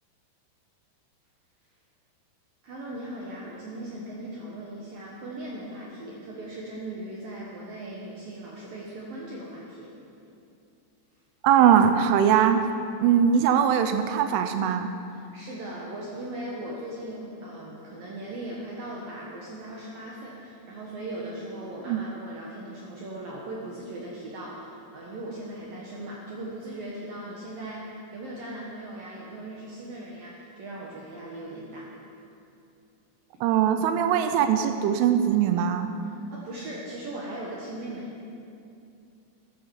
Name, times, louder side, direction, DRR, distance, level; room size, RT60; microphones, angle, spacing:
voice 1, 2.6-9.9 15.1-31.9 36.3-38.1, right 1 dB, 65° right, -4 dB, 2.5 m, -38 dB
voice 2, 11.4-12.6 13.0-14.9 21.9-22.0 33.4-35.9, right 8 dB, 85° right, 8 dB, 3.1 m, -21 dB
12.5 x 11.0 x 7.1 m, 2.6 s
omnidirectional pair, 5.7 m